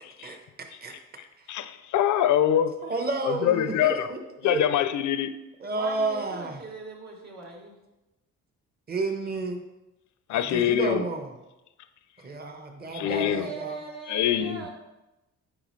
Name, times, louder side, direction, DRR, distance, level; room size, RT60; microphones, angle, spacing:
voice 1, 1.5-2.7 3.2-4.1 4.4-5.3 10.3-11.1 12.9-13.5 14.1-14.6, left 10 dB, 75° left, 0.5 m, -24 dB
voice 2, 2.8-4.6 5.6-6.6 8.9-9.6 10.3-11.3 12.2-13.8, right 3 dB, 30° right, 1.0 m, -31 dB
voice 3, 5.7-7.8 13.0-14.7, right 4 dB, 65° right, 2.1 m, -40 dB
8.7 x 5.0 x 3.2 m
cardioid pair, 90°, 30 cm